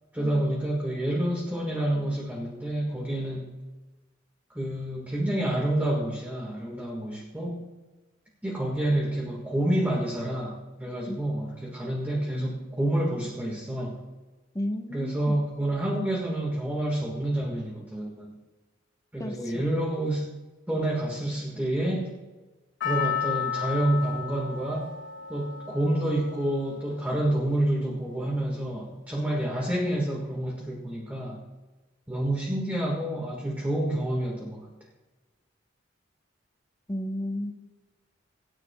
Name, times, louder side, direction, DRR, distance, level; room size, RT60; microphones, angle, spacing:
voice 1, 0.1-3.5 4.5-7.7 8.4-14.0 14.9-18.3 19.1-20.3 20.7-22.1 22.8-24.9 25.3-31.4 32.1-34.7, right 1 dB, 10° right, -2 dB, 1.6 m, -28 dB
voice 2, 14.5-15.4 19.2-19.6 36.9-37.6, left 1 dB, 15° left, 5 dB, 0.9 m, -33 dB
Percussion, 22.8-27.2 27.4-27.5, left 8 dB, 65° left, 1.4 m, -33 dB
26.0 x 9.9 x 2.3 m, 1.2 s
head